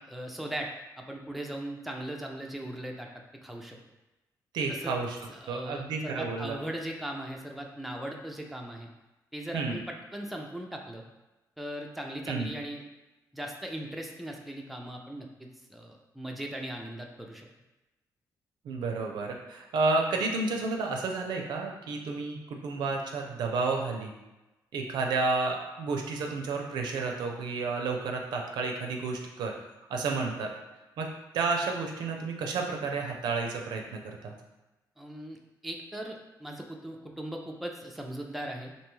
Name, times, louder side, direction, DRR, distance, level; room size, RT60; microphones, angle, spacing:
voice 1, 0.1-0.7 1.0-3.1 3.4-3.8 4.7-4.9 5.3-8.9 9.3-11.0 11.6-12.8 13.3-17.5 35.0-38.7, right 1 dB, ahead, 1 dB, 0.3 m, -39 dB
voice 2, 4.5-5.2 5.5-6.6 9.5-9.8 12.3-12.5 18.6-24.1 24.7-29.5 29.9-30.5 31.0-31.1 31.3-34.3, right 3 dB, 80° right, 1 dB, 0.4 m, -31 dB
2.6 x 2.2 x 3.0 m, 1.0 s
cardioid pair, 90°, 7 cm